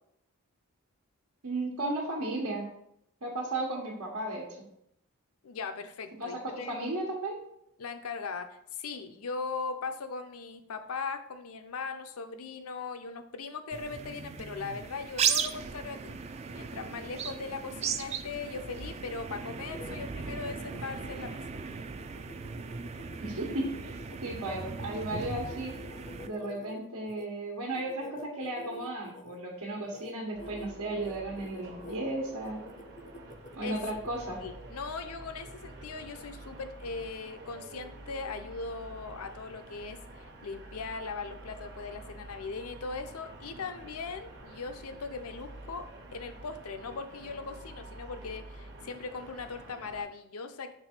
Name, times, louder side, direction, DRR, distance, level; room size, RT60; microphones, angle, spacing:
voice 1, 1.4-2.6 3.2-4.4 6.2-6.3 6.7-7.4 23.2-23.9 24.2-25.7 26.2-32.6 33.6-34.4, right 2 dB, 85° right, -2 dB, 1.3 m, -34 dB
voice 2, 5.4-6.8 7.8-16.2 16.5-21.4 33.6-33.8 34.4-50.7, left 4 dB, 80° left, 9 dB, 0.6 m, -39 dB
sound 1, 13.7-26.3, right 6 dB, 30° right, 0.3 m, -36 dB
sound 2, 19.4-27.3 27.7-29.4 29.8-30.1 30.4-30.7 31.0-32.0 32.4-34.2, left 2 dB, 35° left, 0.4 m, -48 dB
sound 3, 30.3-50.0, right 2 dB, 50° right, 1.0 m, -48 dB
6.1 x 3.6 x 4.4 m, 0.76 s
head